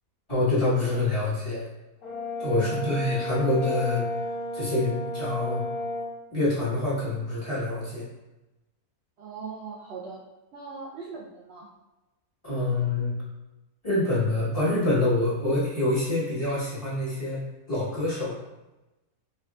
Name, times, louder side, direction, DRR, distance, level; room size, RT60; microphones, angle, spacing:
voice 1, 0.3-1.7 2.4-4.0 4.5-5.6 6.3-8.1 12.4-13.1 13.8-18.3, left 2 dB, 20° left, -11 dB, 1.4 m, -26 dB
Brass instrument, 2.0-6.1, left 1 dB, 50° left, 1.5 m, -32 dB
voice 2, 2.6-3.0 9.2-10.2 10.5-11.7, right 5 dB, 75° right, -3 dB, 0.5 m, -40 dB
5.5 x 2.4 x 2.3 m, 1.0 s
omnidirectional pair, 1.6 m